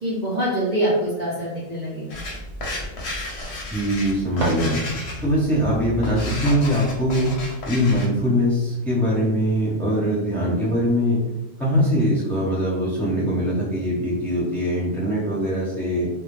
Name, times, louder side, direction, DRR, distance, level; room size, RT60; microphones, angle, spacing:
voice 1, 0.0-2.2, right 1 dB, 50° right, -7 dB, 0.6 m, -24 dB
sound 1, 2.1-8.1, left 2 dB, 65° left, 0.8 m, -32 dB
voice 2, 3.7-4.8 5.2-7.3 7.6-11.2 11.6-16.1, equal, ahead, -8 dB, 0.8 m, -22 dB
sound 2, 4.3-5.4, right 1 dB, 75° right, 1.0 m, -31 dB
2.1 x 2.1 x 3.1 m, 1.0 s
omnidirectional pair, 1.2 m